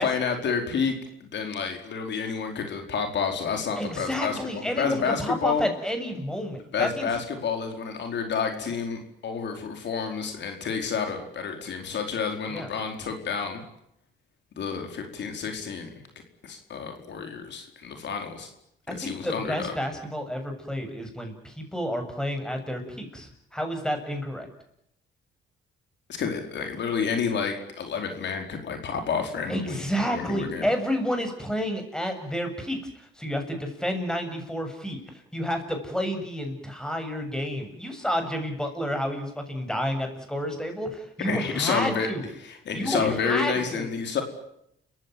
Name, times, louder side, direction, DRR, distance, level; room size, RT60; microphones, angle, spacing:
voice 1, 0.0-5.7 6.7-13.6 14.5-15.9 16.4-18.5 18.9-19.7 26.1-29.8 30.1-30.7 41.2-42.1 42.4-44.2, left 6 dB, 65° left, 4 dB, 4.7 m, -29 dB
voice 2, 3.8-7.1 12.5-12.7 18.9-24.5 29.5-42.3 42.7-43.9, equal, 5° left, 5 dB, 7.6 m, -30 dB
30.0 x 16.0 x 9.4 m, 0.76 s
cardioid pair, 90°, 20 cm